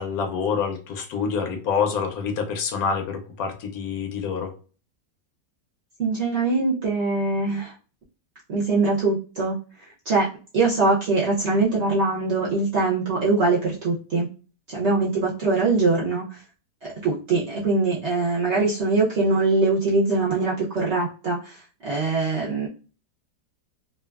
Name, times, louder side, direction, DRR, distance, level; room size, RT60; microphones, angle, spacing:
voice 1, 0.0-4.5, left 6 dB, 65° left, 5 dB, 1.0 m, -27 dB
voice 2, 6.0-7.7 8.5-9.6 10.1-10.3 10.5-14.3 14.7-16.4 16.8-22.7, right 3 dB, 60° right, -5 dB, 0.7 m, -22 dB
2.9 x 2.3 x 2.2 m, 0.36 s
omnidirectional pair, 1.9 m